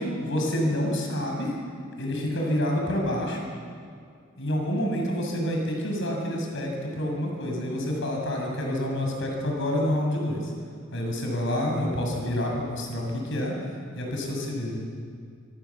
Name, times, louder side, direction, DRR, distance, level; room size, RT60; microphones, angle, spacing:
voice 1, 0.0-1.5 2.0-3.4 4.4-10.5 10.9-13.5 14.0-14.8, left 1 dB, 65° left, 0 dB, 6.9 m, -28 dB
26.5 x 25.5 x 7.3 m, 2.2 s
head